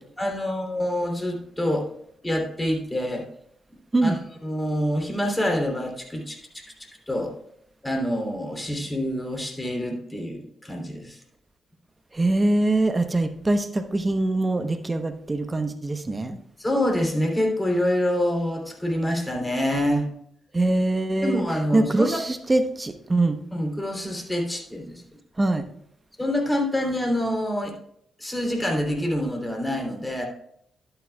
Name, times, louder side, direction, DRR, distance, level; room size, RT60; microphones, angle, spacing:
voice 1, 0.2-1.9 2.2-3.2 4.0-6.6 7.1-7.3 7.8-11.2 16.6-20.1 21.2-22.2 23.5-25.0 26.2-27.8 28.2-30.3, left 1 dB, 20° left, 2 dB, 3.1 m, -26 dB
voice 2, 12.1-16.4 20.5-21.4 21.7-23.4 25.4-25.6, right 2 dB, 30° right, 8 dB, 0.9 m, -23 dB
11.5 x 8.9 x 2.3 m, 0.71 s
hypercardioid pair, 45°, 0 cm